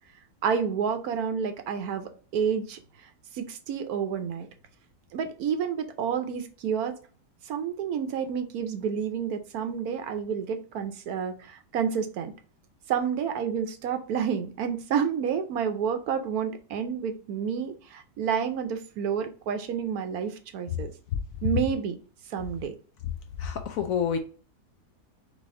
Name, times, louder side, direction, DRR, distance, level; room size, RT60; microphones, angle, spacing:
voice 1, 0.4-2.8 3.3-4.5 5.1-6.9 7.5-12.3 12.9-20.9 21.4-22.0 22.3-22.7, right 7 dB, 70° right, 8 dB, 1.1 m, -29 dB
voice 2, 23.4-24.2, left 7 dB, 70° left, 7 dB, 0.8 m, -28 dB
4.0 x 3.3 x 3.7 m, 0.39 s
omnidirectional pair, 1.7 m